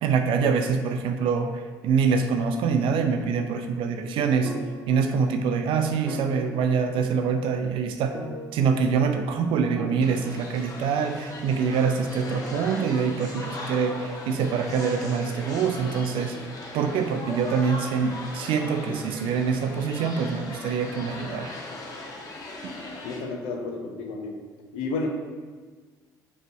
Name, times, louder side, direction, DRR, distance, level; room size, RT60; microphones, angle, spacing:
voice 1, 0.0-4.5 4.9-8.2 8.5-16.4 16.7-21.5, right 6 dB, 60° right, 6 dB, 0.5 m, -25 dB
sound 1, 2.8-3.4 4.4-5.5 6.1-7.5 8.1-9.2 9.8-10.8, right 1 dB, 30° right, 1.5 m, -39 dB
sound 2, 10.0-23.2, left 2 dB, 40° left, 1.2 m, -38 dB
voice 2, 23.0-24.4 24.7-25.1, left 3 dB, 65° left, 2 dB, 0.8 m, -31 dB
6.5 x 3.2 x 4.5 m, 1.5 s
hypercardioid pair, 55°, 10 cm